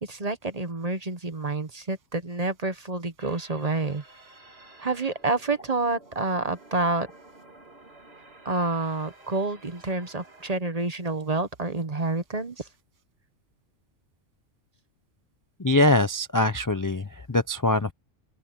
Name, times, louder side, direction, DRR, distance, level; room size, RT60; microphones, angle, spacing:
voice 1, 0.0-4.0 4.8-7.1 8.4-12.7, right 3 dB, 30° right, 1.1 m, -28 dB
sound 1, 3.2-10.5, right 2 dB, 50° right, 2.9 m, -52 dB
voice 2, 15.6-17.9, left 2 dB, 20° left, 0.5 m, -23 dB
open air
omnidirectional pair, 1.3 m